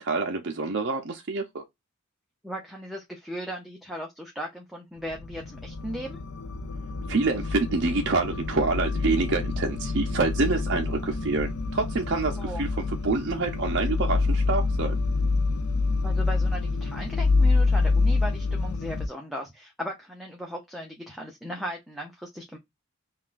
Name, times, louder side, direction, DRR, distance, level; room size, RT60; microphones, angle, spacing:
voice 1, 0.0-1.6 7.1-15.0, right 3 dB, 50° right, 0.5 m, -27 dB
voice 2, 2.4-6.2 12.4-12.7 16.0-22.6, equal, ahead, 0.5 m, -37 dB
sound 1, 5.0-19.1, left 3 dB, 85° left, 0.6 m, -27 dB
5.7 x 2.3 x 2.5 m
head